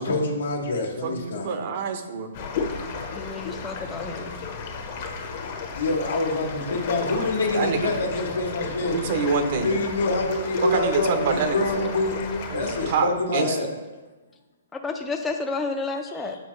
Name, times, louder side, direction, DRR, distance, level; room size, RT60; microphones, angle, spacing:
voice 1, 0.0-1.5 5.8-9.0 9.5-13.8, left 2 dB, 80° left, 1 dB, 1.4 m, -26 dB
voice 2, 1.0-2.3 7.1-7.3 7.5-7.9 8.9-9.7 10.6-11.9 12.5-13.6, right 5 dB, 50° right, 7 dB, 0.8 m, -26 dB
sound 1, 2.3-12.9, left 5 dB, 45° left, 1.0 m, -33 dB
voice 3, 3.1-4.4 14.7-16.4, left 3 dB, 10° left, 2 dB, 0.5 m, -31 dB
7.7 x 4.7 x 3.1 m, 1.2 s
hypercardioid pair, 140°, 0 cm